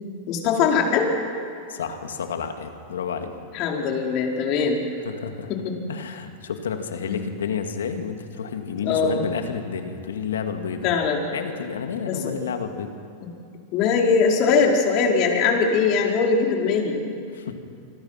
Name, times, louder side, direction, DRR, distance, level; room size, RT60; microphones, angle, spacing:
voice 1, 0.3-1.1 3.5-4.8 5.5-5.7 7.0-7.2 8.8-9.2 10.8-11.2 12.0-12.3 13.7-17.1, left 5 dB, 50° left, 0 dB, 4.8 m, -21 dB
voice 2, 1.7-3.3 5.0-5.5 5.9-10.9 11.3-12.9 17.3-17.5, left 6 dB, 85° left, 6 dB, 2.4 m, -30 dB
27.0 x 24.5 x 6.0 m, 2.4 s
hypercardioid pair, 105°, 0 cm